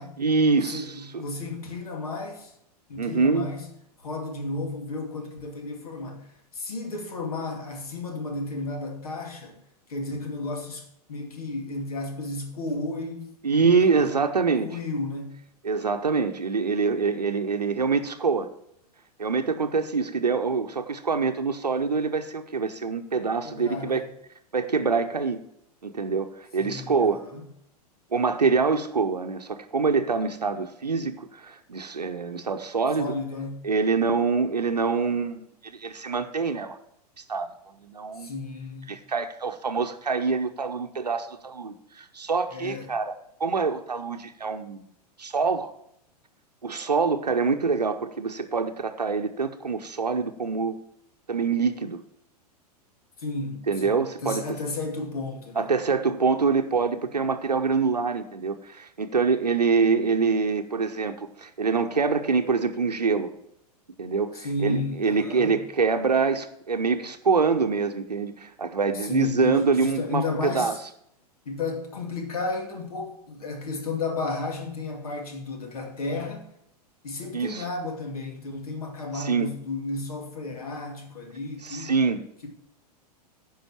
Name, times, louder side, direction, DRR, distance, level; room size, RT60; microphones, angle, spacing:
voice 1, 0.2-1.2 3.0-3.5 13.4-14.7 15.6-18.5 19.2-24.0 24.5-25.4 25.8-27.2 28.1-33.1 33.6-36.8 37.3-37.5 37.8-38.3 38.9-43.1 43.4-44.8 45.2-45.7 46.6-50.8 51.3-52.0 53.7-54.4 55.6-63.3 64.0-70.8 77.3-77.7 79.1-79.5 81.6-82.2, right 5 dB, 80° right, 0.8 m, -25 dB
voice 2, 0.7-2.5 2.9-3.7 4.0-6.3 6.5-9.6 9.9-13.3 13.8-14.1 14.6-15.4 23.4-24.1 26.6-27.5 33.0-33.7 38.2-38.9 42.5-42.9 53.2-55.8 64.3-65.6 69.0-70.8 71.5-76.5 77.0-81.9, left 3 dB, 65° left, 2.5 m, -33 dB
10.5 x 5.5 x 7.2 m
figure-of-eight pair, 95°, 20 cm